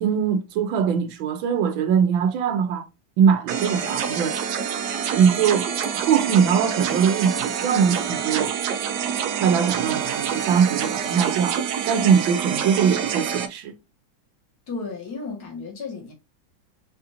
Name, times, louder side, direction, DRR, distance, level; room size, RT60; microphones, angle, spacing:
voice 1, 0.0-2.9 3.2-4.4 5.1-8.5 9.4-11.6 11.9-13.7, right 7 dB, 90° right, 1.4 m, -21 dB
sound 1, 3.5-13.5, right 7 dB, 70° right, 1.0 m, -27 dB
voice 2, 14.7-16.1, left 4 dB, 55° left, 1.7 m, -33 dB
4.2 x 2.5 x 2.7 m
omnidirectional pair, 2.1 m